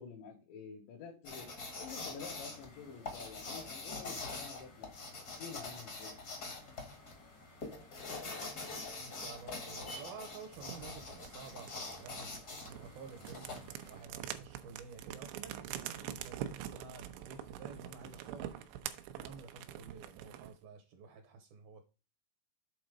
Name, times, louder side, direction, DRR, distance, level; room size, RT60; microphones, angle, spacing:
voice 1, 0.0-1.5 1.8-6.2, left 5 dB, 85° left, 0 dB, 3.6 m, -49 dB
sound 1, 1.2-14.0, left 3 dB, 65° left, 0.9 m, -45 dB
sound 2, 6.1-19.6, right 1 dB, 35° left, 0.6 m, -62 dB
voice 2, 9.0-18.6 19.2-21.8, right 5 dB, 75° right, 5 dB, 2.3 m, -51 dB
sound 3, 10.5-20.6, right 11 dB, 90° right, 3.0 m, -45 dB
7.9 x 3.9 x 5.0 m, 0.33 s
omnidirectional pair, 5.1 m